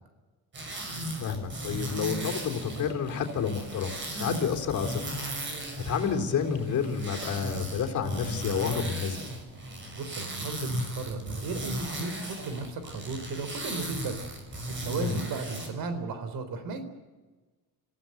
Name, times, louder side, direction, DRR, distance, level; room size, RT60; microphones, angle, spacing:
sound 1, 0.5-15.7, right 1 dB, 30° right, 6.0 m, -36 dB
voice 1, 1.2-5.0 5.9-9.2 15.0-15.2, left 7 dB, 55° left, 4 dB, 3.7 m, -30 dB
voice 2, 9.9-14.2 14.8-16.8, right 3 dB, 75° right, 10 dB, 4.1 m, -35 dB
28.0 x 16.0 x 7.9 m, 1.3 s
cardioid pair, 150°, 36 cm